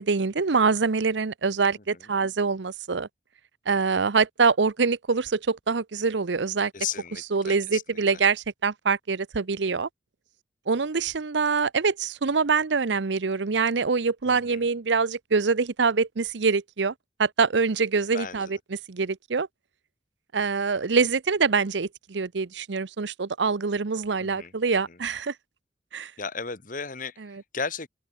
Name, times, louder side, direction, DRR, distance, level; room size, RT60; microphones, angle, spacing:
voice 1, 0.0-3.1 3.7-6.7 7.3-9.9 10.7-16.9 17.2-18.6 18.9-19.5 20.3-25.3 25.9-26.1 27.3-27.4, right 4 dB, 75° right, 0.7 m, -25 dB
voice 2, 6.7-8.2 14.3-14.7 18.1-18.5 24.2-24.5 24.9-25.0 26.2-27.9, left 6 dB, 45° left, 2.1 m, -35 dB
open air
head